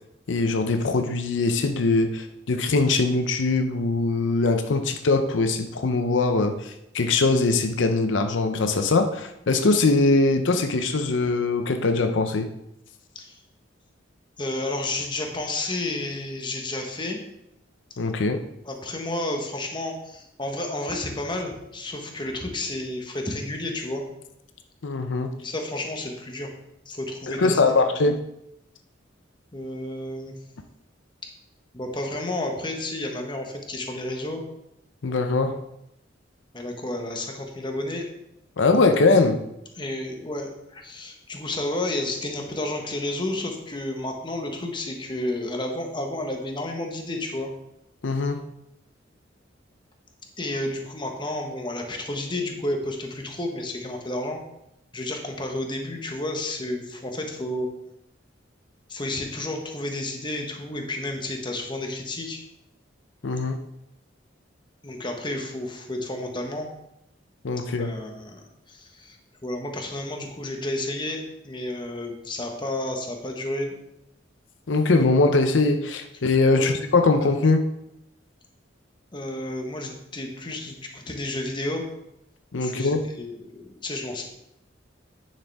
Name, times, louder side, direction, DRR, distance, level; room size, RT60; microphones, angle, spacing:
voice 1, 0.3-12.5 18.0-18.4 24.8-25.3 27.3-28.2 35.0-35.6 38.6-39.4 48.0-48.4 63.2-63.6 67.4-67.9 74.7-77.6 82.5-83.0, left 3 dB, 80° left, 7 dB, 0.6 m, -22 dB
voice 2, 14.4-17.2 18.6-24.0 25.4-26.5 26.9-27.6 29.5-30.3 31.7-34.4 36.5-38.0 39.8-47.5 50.4-54.4 54.9-57.7 58.9-62.4 64.8-66.7 67.8-69.2 69.4-73.7 76.5-76.8 79.1-81.8 82.6-84.2, left 1 dB, 25° left, 3 dB, 1.2 m, -31 dB
9.7 x 6.6 x 3.5 m, 0.83 s
head